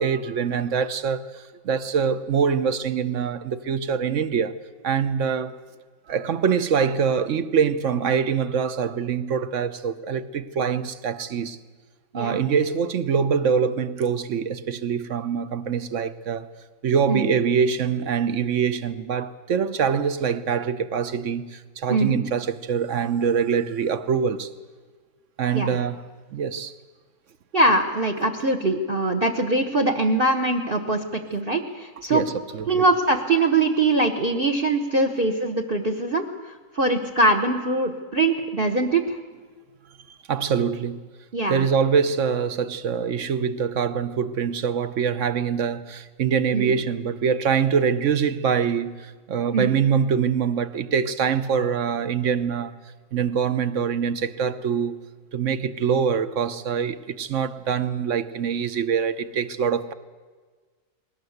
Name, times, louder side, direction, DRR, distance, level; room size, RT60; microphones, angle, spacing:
voice 1, 0.0-4.6 4.8-5.6 6.1-11.6 12.1-16.5 16.8-24.5 25.4-26.0 26.3-26.7 32.1-32.8 40.3-41.0 41.5-52.7 53.1-55.0 55.3-59.9, right 6 dB, 50° right, 1.1 m, -24 dB
voice 2, 27.5-32.2 32.7-36.3 36.7-39.2 41.3-41.7 46.5-46.7 49.5-49.7, right 2 dB, 35° right, 1.3 m, -22 dB
20.5 x 18.0 x 8.0 m
omnidirectional pair, 1.9 m